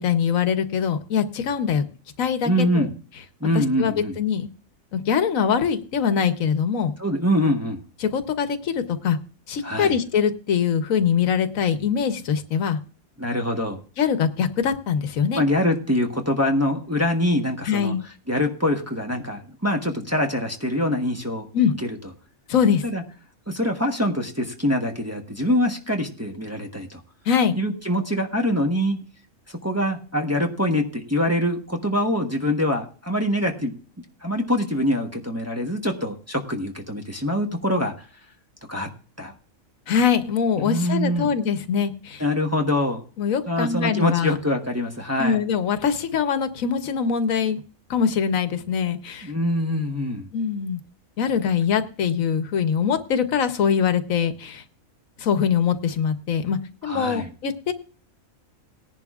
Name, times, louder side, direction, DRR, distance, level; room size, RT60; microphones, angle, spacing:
voice 1, 0.0-1.8 2.2-2.9 3.5-4.5 4.9-6.9 8.0-9.2 9.5-12.8 14.0-15.4 17.6-18.0 21.5-21.7 22.5-22.8 27.3-27.6 39.9-42.2 43.2-44.3 45.2-47.6 47.9-49.3 50.3-50.8 51.2-54.6 55.2-57.7, left 7 dB, 80° left, 10 dB, 1.3 m, -23 dB
voice 2, 2.4-2.9 3.4-4.2 7.0-7.8 9.6-10.0 13.2-13.8 15.3-17.9 18.3-21.5 22.8-23.0 23.5-27.0 27.6-29.0 29.5-33.7 34.2-38.1 38.7-38.9 39.2-39.3 40.6-41.3 42.2-43.0 43.5-45.4 49.2-50.3 56.8-57.3, left 1 dB, 10° right, 2 dB, 1.0 m, -24 dB
19.0 x 10.5 x 2.4 m, 0.39 s
omnidirectional pair, 1.4 m